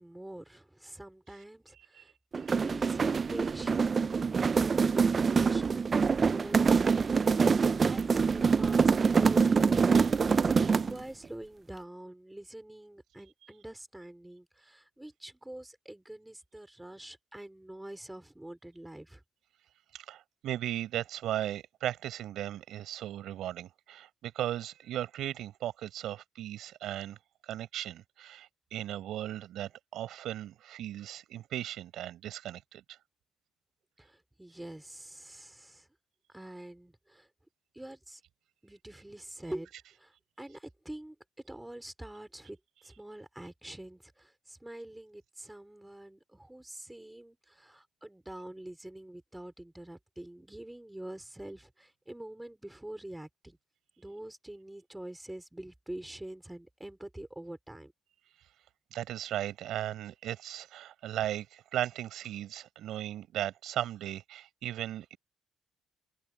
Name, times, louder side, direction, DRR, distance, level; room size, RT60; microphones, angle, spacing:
voice 1, 0.0-2.1 2.5-5.8 6.2-8.9 9.2-19.2 34.0-35.9 36.3-37.3 37.7-38.2 38.6-39.7 40.0-41.2 41.4-42.6 42.8-53.6 54.0-57.9, right 1 dB, 10° right, 5.0 m, -45 dB
sound 1, 2.3-11.0, right 5 dB, 40° right, 0.6 m, -25 dB
voice 2, 19.9-27.2 27.4-33.0 58.9-65.2, right 12 dB, 80° right, 5.4 m, -37 dB
cardioid pair, 90°, 0 cm